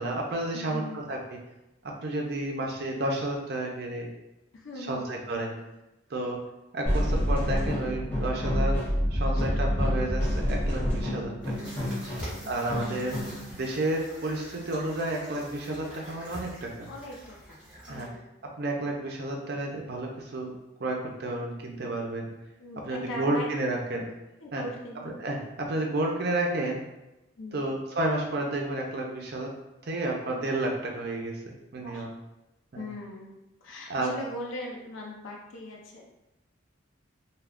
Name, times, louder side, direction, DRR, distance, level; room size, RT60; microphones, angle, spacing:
voice 1, 0.0-1.4 1.8-4.1 4.9-5.6 6.1-6.4 6.7-8.8 9.1-11.5 12.4-13.1 13.5-16.9 17.9-18.1 18.6-20.5 20.8-22.3 22.9-24.1 24.5-24.6 25.0-26.8 27.5-29.5 29.8-32.1 32.7-32.9 33.9-34.1, right 2 dB, 55° right, 0 dB, 0.5 m, -31 dB
voice 2, 0.5-1.0 4.5-5.1 7.4-7.8 9.2-9.8 12.1-12.8 16.9-18.3 22.6-23.5 24.4-25.1 27.4-27.7 31.8-32.1 32.7-36.1, left 1 dB, 80° left, 0 dB, 0.5 m, -41 dB
sound 1, 6.9-13.5, equal, 10° left, 0.6 m, -28 dB
sound 2, 11.4-18.1, equal, 5° right, 1.0 m, -44 dB
2.3 x 2.2 x 3.5 m, 0.96 s
head